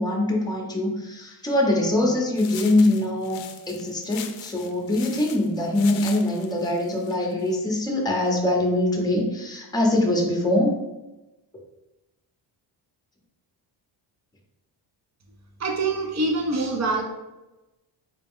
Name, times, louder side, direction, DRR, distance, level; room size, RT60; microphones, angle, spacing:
voice 1, 0.0-10.7, left 1 dB, 10° left, -1 dB, 0.8 m, -23 dB
sound 1, 2.4-7.6, left 9 dB, 80° left, 0.5 m, -41 dB
voice 2, 15.6-17.0, right 2 dB, 35° right, 2 dB, 0.8 m, -25 dB
4.1 x 2.2 x 3.6 m, 1.0 s
cardioid pair, 105°, 45 cm